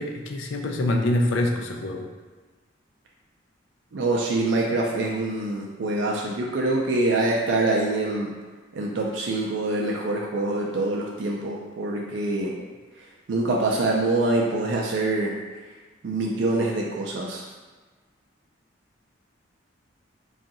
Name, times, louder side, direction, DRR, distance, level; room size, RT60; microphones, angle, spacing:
voice 1, 0.0-2.1, left 1 dB, 80° left, 3 dB, 0.4 m, -25 dB
voice 2, 3.9-8.3 8.7-12.5 13.3-15.3 16.0-17.4, right 2 dB, 70° right, -2 dB, 0.4 m, -25 dB
2.6 x 2.4 x 3.9 m, 1.4 s
head